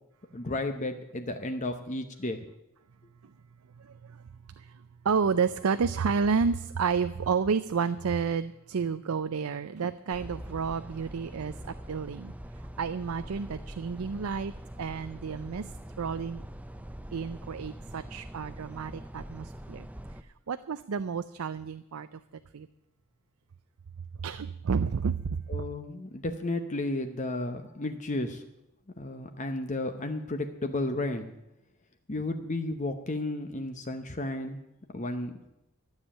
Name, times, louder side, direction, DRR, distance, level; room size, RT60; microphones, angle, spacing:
voice 1, 0.3-2.4 25.5-28.4 29.0-31.3 32.1-34.6 34.9-35.3, left 2 dB, 35° left, 6 dB, 0.9 m, -33 dB
voice 2, 3.8-4.2 4.6-12.3 12.8-15.7 16.0-16.4 17.1-19.9 20.5-22.2 22.5-22.7 24.2-25.7, right 5 dB, 85° right, 12 dB, 0.5 m, -30 dB
sound 1, 10.1-20.2, right 1 dB, 5° right, 0.5 m, -43 dB
13.0 x 7.4 x 10.0 m, 0.89 s
head